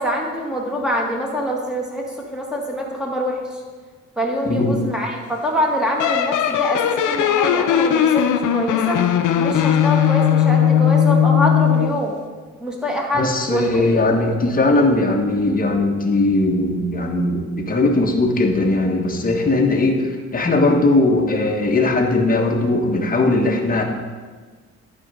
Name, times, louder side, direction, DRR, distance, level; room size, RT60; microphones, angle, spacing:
voice 1, 0.0-3.6 4.2-9.0 9.4-12.2 12.6-13.7, equal, ahead, -2 dB, 2.1 m, -24 dB
voice 2, 4.5-4.8 13.1-23.8, left 2 dB, 25° left, 2 dB, 1.4 m, -19 dB
sound 1, 6.0-12.0, left 9 dB, 70° left, 0.6 m, -18 dB
11.0 x 4.5 x 5.1 m, 1.4 s
cardioid pair, 75°, 31 cm